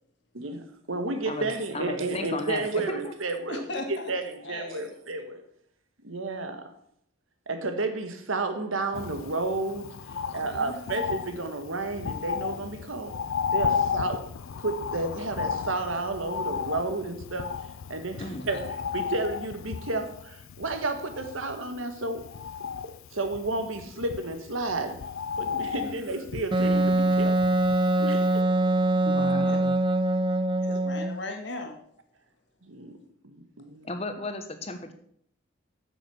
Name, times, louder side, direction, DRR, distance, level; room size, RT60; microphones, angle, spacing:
voice 1, 0.3-3.6 3.9-5.4 6.0-6.7 7.5-10.0 10.3-13.2 13.5-14.3 14.6-17.5 17.9-22.3 22.8-25.0 25.4-27.4 28.0-28.5 32.6-33.0 33.2-33.9, right 2 dB, 80° right, 1.4 m, -32 dB
voice 2, 1.7-3.1 18.2-18.6 28.9-29.7 33.8-34.9, left 2 dB, 30° left, 1.2 m, -35 dB
voice 3, 3.5-4.1 4.4-4.9 10.1-10.8 18.3-18.6 25.7-26.0 29.4-29.6 30.6-31.8, left 2 dB, 55° left, 2.0 m, -38 dB
Bird, 8.9-28.0 28.4-28.5, left 6 dB, 80° left, 0.4 m, -34 dB
Wind instrument woodwind instrument, 26.5-31.2, right 1 dB, 25° right, 0.5 m, -23 dB
9.2 x 7.4 x 6.2 m
head